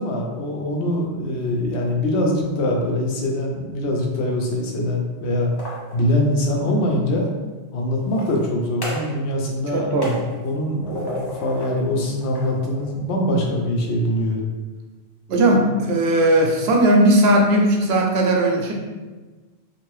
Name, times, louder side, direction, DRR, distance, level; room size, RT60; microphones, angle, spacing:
voice 1, 0.0-5.5 5.9-7.3 7.7-9.9 10.4-14.4, left 1 dB, 90° left, 0 dB, 0.9 m, -23 dB
sound 1, 5.4-6.9 8.0-9.2 9.5-11.8 12.2-13.5, equal, 30° left, 0.5 m, -35 dB
voice 2, 9.7-10.2 15.3-18.7, right 1 dB, 75° right, 0 dB, 0.8 m, -17 dB
2.6 x 2.5 x 3.1 m, 1.3 s
omnidirectional pair, 1.1 m